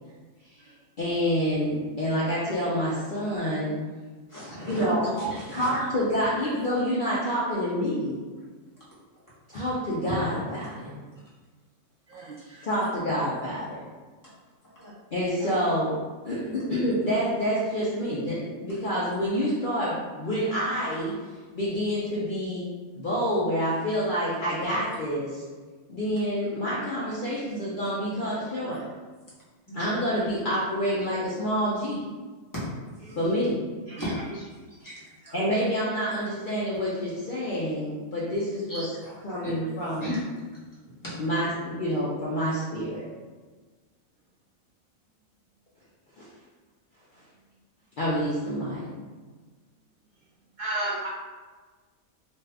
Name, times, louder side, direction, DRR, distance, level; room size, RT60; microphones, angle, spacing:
voice 1, 1.0-3.8 4.7-5.1 5.5-8.2 9.5-10.9 12.6-13.8 15.1-16.0 16.2-21.1 21.5-22.7 22.9-25.4 25.9-28.8 29.7-32.0 33.2-33.6 35.3-38.9 39.2-40.1 41.2-43.0 46.2-46.3 48.0-48.9, equal, 55° left, -8 dB, 0.6 m, -27 dB
voice 2, 4.3-5.9 6.4-6.5 9.5-9.6 10.7-10.9 12.1-12.6 14.7-14.9 28.7-28.8 29.7-29.8 32.5-32.6 33.0-33.2 34.0-34.4 34.8-35.1 38.7-39.7 40.0-40.2 41.0-41.1, equal, 15° left, -10 dB, 0.9 m, -36 dB
voice 3, 12.1-12.7 15.4-15.5 26.4-26.6 33.0-33.2 33.9-34.0 35.2-35.3 50.6-51.1, right 2 dB, 65° right, -7 dB, 0.4 m, -34 dB
2.6 x 2.4 x 3.2 m, 1.4 s
omnidirectional pair, 1.4 m